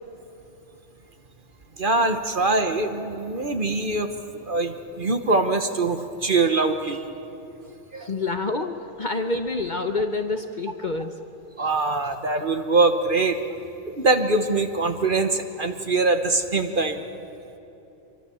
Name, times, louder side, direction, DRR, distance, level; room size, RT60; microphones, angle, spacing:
voice 1, 1.8-4.1 4.3-7.0 7.9-8.1 11.6-13.4 13.9-17.0, right 3 dB, 40° right, 7 dB, 1.3 m, -23 dB
voice 2, 8.0-11.3, left 3 dB, 40° left, 7 dB, 0.9 m, -27 dB
25.5 x 24.0 x 7.0 m, 2.9 s
omnidirectional pair, 1.4 m